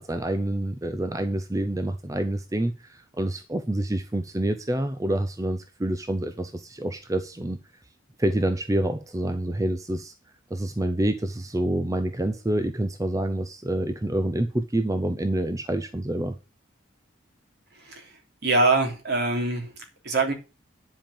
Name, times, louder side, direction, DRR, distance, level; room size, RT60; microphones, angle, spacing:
voice 1, 0.0-7.6 8.2-10.1 10.5-16.4, right 1 dB, 15° right, 0.6 m, -27 dB
voice 2, 17.7-18.1 18.4-19.7 20.0-20.3, right 3 dB, 55° right, 3.3 m, -23 dB
10.5 x 5.3 x 7.2 m
head